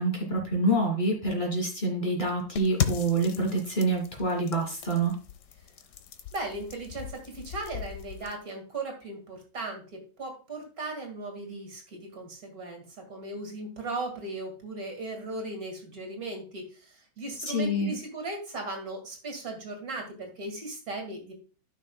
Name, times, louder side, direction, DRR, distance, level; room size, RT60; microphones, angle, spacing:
voice 1, 0.0-5.2 17.5-18.0, right 2 dB, 30° left, 0 dB, 2.7 m, -27 dB
sound 1, 2.6-8.4, left 7 dB, 75° left, 1.4 m, -37 dB
voice 2, 6.3-21.4, right 2 dB, 60° right, 3 dB, 2.6 m, -37 dB
13.5 x 6.1 x 2.3 m, 0.36 s
omnidirectional pair, 1.8 m